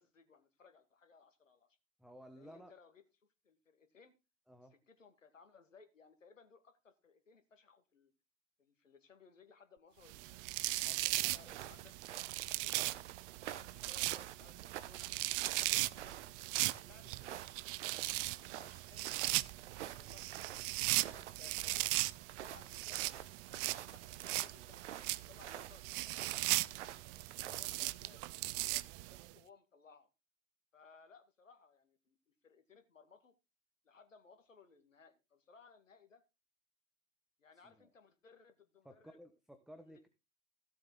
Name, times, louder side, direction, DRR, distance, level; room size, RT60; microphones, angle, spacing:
voice 1, 0.0-1.8 2.4-3.0 3.4-4.1 4.7-8.1 8.6-10.4 11.1-11.9 12.5-13.0 13.5-15.1 15.7-16.2 16.7-19.5 20.0-20.3 20.9-22.0 22.4-26.7 27.4-30.1 30.7-33.3 33.8-36.2 37.4-39.2 39.8-40.1, left 5 dB, 80° left, 8 dB, 2.1 m, -63 dB
voice 2, 2.0-2.7 4.5-4.7 10.8-11.6 37.5-37.9 38.8-40.1, equal, ahead, 7 dB, 1.3 m, -56 dB
sound 1, 10.1-29.3, right 20 dB, 45° right, 0.7 m, -38 dB
sound 2, 11.4-27.9, right 11 dB, 65° right, 1.1 m, -50 dB
16.0 x 7.7 x 3.8 m, 0.27 s
figure-of-eight pair, 85°, 38 cm